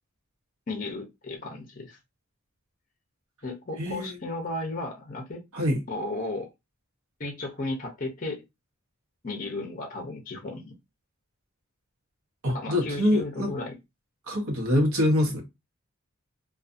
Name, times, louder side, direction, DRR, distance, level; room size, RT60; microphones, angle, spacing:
voice 1, 0.7-2.0 3.4-5.4 5.9-6.5 7.2-8.4 9.2-10.7 12.5-13.8, left 2 dB, 40° left, 0.6 m, -34 dB
voice 2, 3.8-4.2 5.5-5.8 12.4-13.6 14.3-15.4, left 1 dB, 75° right, 0.8 m, -25 dB
2.5 x 2.3 x 2.5 m
head